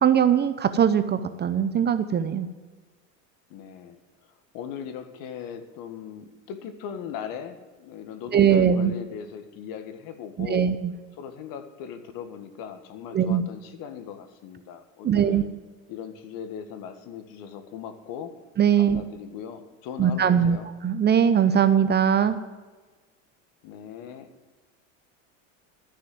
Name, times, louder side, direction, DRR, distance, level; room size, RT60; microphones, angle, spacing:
voice 1, 0.0-2.5 8.3-8.9 10.4-10.9 13.1-13.4 15.0-15.4 18.6-19.0 20.0-20.6 20.8-22.4, right 8 dB, 25° right, 11 dB, 0.6 m, -21 dB
voice 2, 3.5-4.0 4.5-10.7 11.1-15.5 15.9-18.4 18.7-20.7 23.6-24.3, left 8 dB, 60° left, 9 dB, 1.7 m, -39 dB
13.0 x 6.5 x 7.8 m, 1.3 s
supercardioid pair, 115°, 39 cm